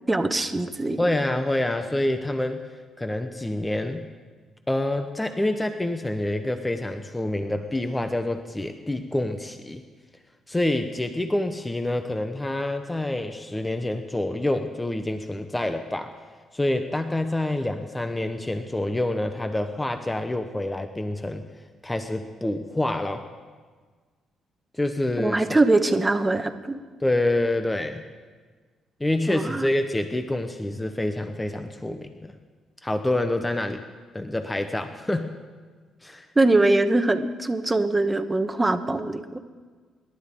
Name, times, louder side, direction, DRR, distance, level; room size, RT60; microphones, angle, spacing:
voice 1, 0.1-1.0 25.2-26.8 29.3-29.7 36.4-39.4, right 2 dB, 15° right, 8 dB, 1.2 m, -22 dB
voice 2, 1.0-2.7 3.0-4.1 4.7-9.8 10.5-16.1 16.5-21.5 21.8-23.3 24.8-25.6 27.0-28.0 29.0-32.4 32.8-33.8 34.1-35.3 36.0-36.3, left 1 dB, 15° left, 7 dB, 0.9 m, -27 dB
27.0 x 12.0 x 3.8 m, 1.5 s
cardioid pair, 90°, 0 cm